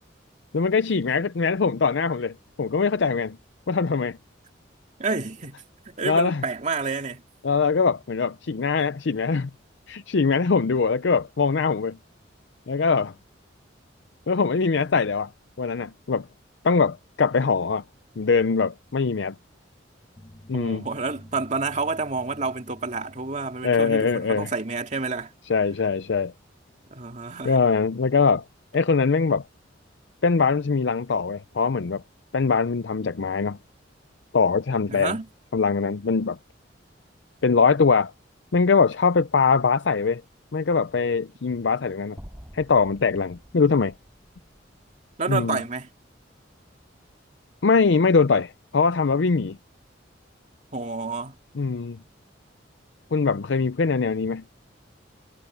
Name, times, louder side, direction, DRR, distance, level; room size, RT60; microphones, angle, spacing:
voice 1, 0.5-3.4 3.7-4.2 6.0-6.4 7.4-9.5 9.9-12.0 12.7-13.1 14.3-15.3 15.6-16.3 16.6-17.8 18.2-19.3 20.5-20.8 23.6-24.5 25.5-26.3 27.4-28.4 28.7-29.4 30.2-32.0 32.3-33.6 34.3-35.2 35.5-36.4 37.4-38.1 38.5-40.2 40.5-42.2 42.5-43.9 45.3-45.6 47.6-49.6 51.6-52.0 53.1-54.4, left 5 dB, 70° left, 0.6 m, -22 dB
voice 2, 5.0-7.2 20.5-25.3 26.9-27.6 34.9-35.3 45.2-45.9 50.7-51.4, right 4 dB, 40° right, 2.3 m, -29 dB
sound 1, 20.2-25.2, left 1 dB, 20° left, 1.2 m, -51 dB
sound 2, 42.2-46.4, equal, 15° right, 6.3 m, -49 dB
head